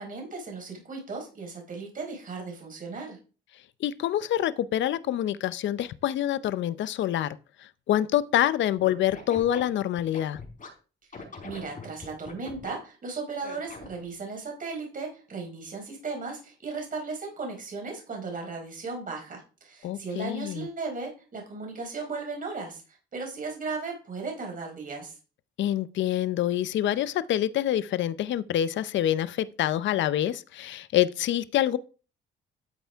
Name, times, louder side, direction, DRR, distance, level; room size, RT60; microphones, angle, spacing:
voice 1, 0.0-3.2 11.4-22.8 23.1-25.1, right 4 dB, 45° right, 4.5 m, -36 dB
voice 2, 3.8-7.4 7.9-10.4 19.8-20.7 25.6-31.8, left 12 dB, 70° left, 0.6 m, -26 dB
Scratching (performance technique), 8.8-10.7 11.1-12.7 13.4-14.0, left 4 dB, 40° left, 4.8 m, -42 dB
12.5 x 7.9 x 3.5 m
cardioid pair, 90°, 20 cm